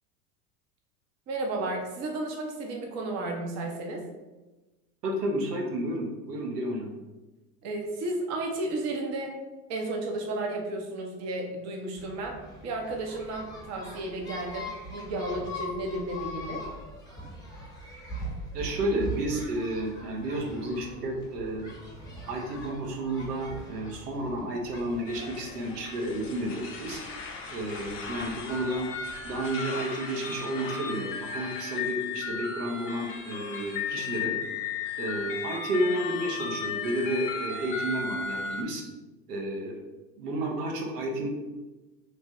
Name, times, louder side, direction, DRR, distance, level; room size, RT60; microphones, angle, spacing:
voice 1, 1.3-4.0 7.6-9.4 9.7-16.7, right 2 dB, 35° right, 1 dB, 0.7 m, -33 dB
voice 2, 5.0-6.9 18.5-21.7 22.3-27.0 27.5-28.9 29.2-34.3 35.0-38.8 39.3-39.8 40.2-41.3, right 1 dB, 80° right, 1 dB, 0.8 m, -31 dB
sound 1, 12.0-29.4, equal, 10° left, 0.9 m, -42 dB
sound 2, 25.1-38.6, left 6 dB, 30° left, 0.4 m, -35 dB
3.2 x 2.2 x 2.8 m, 1.1 s
hypercardioid pair, 80°, 47 cm